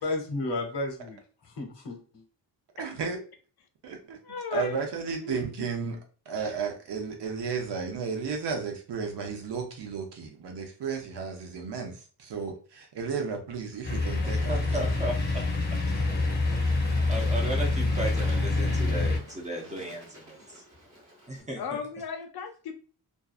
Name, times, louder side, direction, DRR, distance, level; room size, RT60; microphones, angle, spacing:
voice 1, 0.0-2.2, left 2 dB, 90° left, 2 dB, 1.0 m, -33 dB
voice 2, 2.8-3.2 3.8-4.2 4.5-6.0 6.3-14.9, right 5 dB, 75° right, 3 dB, 0.7 m, -33 dB
voice 3, 4.2-4.8 5.2-5.4 21.6-22.7, left 5 dB, 65° left, 5 dB, 0.5 m, -35 dB
sound 1, 13.8-19.2, left 2 dB, 25° left, 0.6 m, -26 dB
voice 4, 14.2-15.4 16.8-20.6 21.3-21.6, right 1 dB, 15° right, 0 dB, 0.5 m, -35 dB
Bird / Water, 14.7-21.4, right 1 dB, 40° right, 0.9 m, -50 dB
2.5 x 2.3 x 2.4 m, 0.39 s
wide cardioid pair, 160°, 41 cm